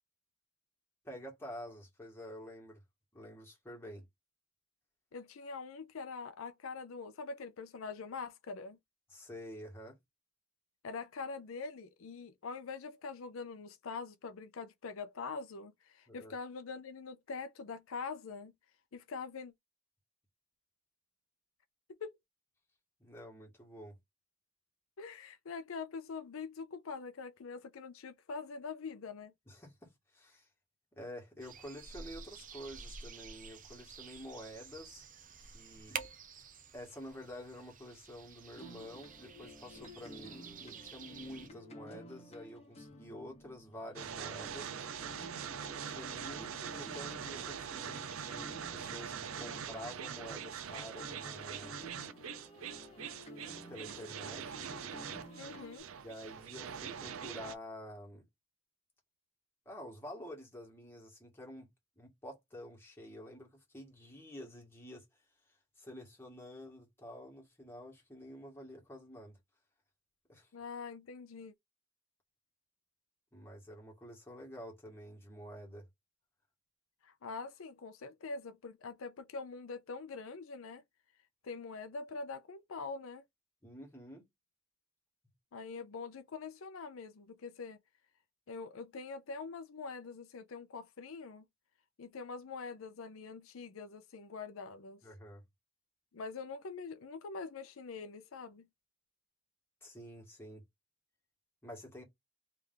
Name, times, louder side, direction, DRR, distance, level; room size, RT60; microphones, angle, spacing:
voice 1, 1.0-2.8 3.1-4.1 9.1-10.0 16.1-16.3 23.0-23.9 29.5-30.5 31.0-35.0 35.4-36.1 36.7-44.7 45.7-51.8 53.5-54.7 56.0-58.3 59.7-61.7 62.0-65.0 65.8-69.4 70.3-70.5 73.3-75.9 83.6-84.2 95.0-95.4 99.8-100.6 101.6-102.0, equal, 10° left, 1.8 m, -49 dB
voice 2, 5.1-8.8 10.8-18.5 18.9-19.5 22.0-22.1 25.0-29.3 55.4-55.9 70.5-71.5 77.0-80.8 81.4-83.2 85.5-87.8 88.5-91.4 92.0-95.0 96.1-98.7, left 4 dB, 75° left, 0.5 m, -44 dB
sound 1, 31.4-41.5, right 6 dB, 40° right, 0.7 m, -49 dB
sound 2, 38.5-50.6 51.0-55.8, equal, 30° left, 1.0 m, -53 dB
sound 3, 44.0-57.6, right 7 dB, 80° right, 0.5 m, -43 dB
3.4 x 3.3 x 3.8 m
head